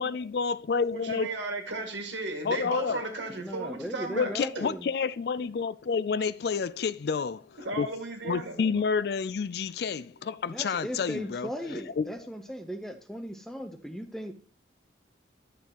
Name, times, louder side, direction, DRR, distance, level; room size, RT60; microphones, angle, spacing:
voice 1, 0.0-1.3 2.4-3.0 4.1-7.9 8.2-12.1, left 5 dB, 60° left, 0.4 m, -29 dB
voice 2, 1.0-4.3 7.6-8.6, right 2 dB, 85° right, 2.0 m, -35 dB
voice 3, 3.3-4.9 10.5-14.3, equal, ahead, 0.6 m, -37 dB
11.5 x 6.8 x 3.0 m
head